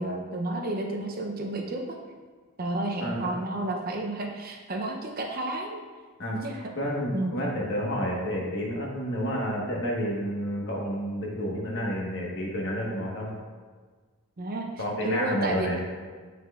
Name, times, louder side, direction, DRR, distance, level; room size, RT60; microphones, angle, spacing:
voice 1, 0.0-1.8 2.6-5.8 6.3-6.6 7.1-7.4 14.4-14.7 15.0-15.7, right 2 dB, 45° right, 2 dB, 0.7 m, -31 dB
voice 2, 3.0-3.3 6.2-6.4 6.8-13.3 14.8-15.8, equal, 55° left, -2 dB, 1.3 m, -30 dB
7.7 x 5.9 x 2.4 m, 1.5 s
head